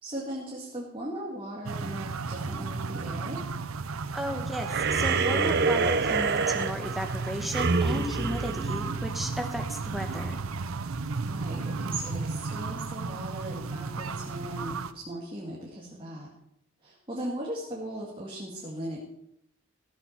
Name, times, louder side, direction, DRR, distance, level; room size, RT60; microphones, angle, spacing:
voice 1, 0.0-3.5 11.2-16.3 16.8-19.0, right 1 dB, 25° right, -4 dB, 2.4 m, -38 dB
sound 1, 1.7-14.9, right 4 dB, 85° right, 0.7 m, -34 dB
voice 2, 4.1-10.4, equal, ahead, 4 dB, 1.4 m, -34 dB
sound 2, 4.7-9.4, right 4 dB, 55° right, 0.8 m, -27 dB
15.0 x 8.2 x 5.9 m, 0.76 s
head